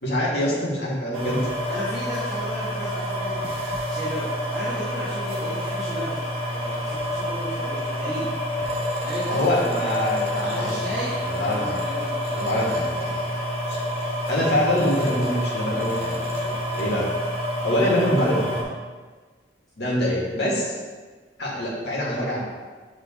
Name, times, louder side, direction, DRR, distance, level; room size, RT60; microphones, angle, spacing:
voice 1, 0.0-1.5 9.3-10.8 11.2-11.7 12.3-13.2 13.7-13.8 14.3-17.1 17.6-18.6 19.8-20.7 21.4-22.4, left 1 dB, 70° left, -5 dB, 1.8 m, -25 dB
sound 1, 1.1-18.6, equal, 35° right, 1.4 m, -28 dB
voice 2, 1.7-8.3 9.0-9.8 10.4-12.4 14.0-14.2 19.9-20.1, equal, ahead, -13 dB, 1.5 m, -35 dB
8.6 x 3.6 x 3.6 m, 1.4 s
head